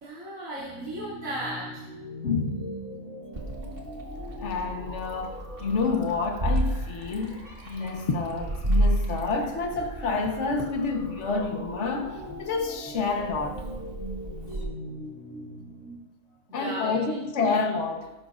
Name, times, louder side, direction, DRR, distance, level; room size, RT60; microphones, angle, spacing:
voice 1, 0.0-1.8 16.5-17.7, right 1 dB, 70° right, 3.3 m, -36 dB
sound 1, 0.6-16.0, left 1 dB, 80° left, 4.3 m, -42 dB
voice 2, 2.2-2.7 4.4-13.6 16.5-18.1, left 4 dB, 55° left, 1.5 m, -29 dB
Meow, 3.3-14.6, right 1 dB, 40° right, 2.0 m, -32 dB
19.0 x 12.0 x 2.6 m
omnidirectional pair, 1.5 m